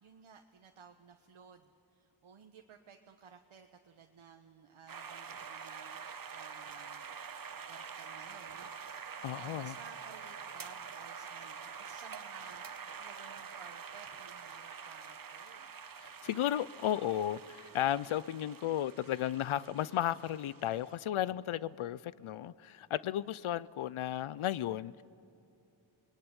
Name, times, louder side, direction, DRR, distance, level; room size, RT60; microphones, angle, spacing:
voice 1, 0.0-7.1 7.7-15.7, right 6 dB, 85° right, 4 dB, 1.2 m, -56 dB
sound 1, 4.9-21.0, right 6 dB, 45° right, 1.1 m, -46 dB
voice 2, 9.2-9.7 16.0-25.0, left 11 dB, 90° left, 20 dB, 0.6 m, -34 dB
28.0 x 20.5 x 9.8 m, 2.8 s
wide cardioid pair, 105°, 47 cm